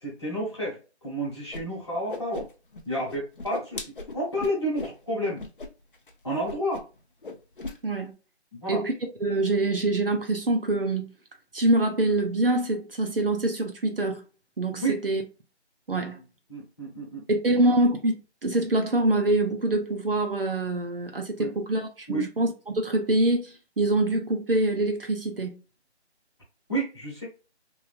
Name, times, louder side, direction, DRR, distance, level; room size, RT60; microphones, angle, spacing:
voice 1, 0.0-2.5 2.8-5.4 6.2-6.8 8.5-8.8 14.8-15.0 16.5-17.2 17.7-17.8 21.4-21.5 22.1-22.3 26.7-27.3, right 1 dB, 25° left, 1.1 m, -30 dB
Whoosh swoosh swish, 1.5-1.6 1.9-2.8 3.1-5.0 5.4-5.7 5.9-6.1 6.4-7.0 7.2-7.8, left 3 dB, 50° left, 0.5 m, -37 dB
voice 2, 9.2-11.1 11.5-14.2 14.6-15.2 15.9-16.2 17.3-18.2 18.4-25.6, right 2 dB, 55° right, 0.6 m, -25 dB
3.1 x 2.4 x 2.3 m
figure-of-eight pair, 175°, 34 cm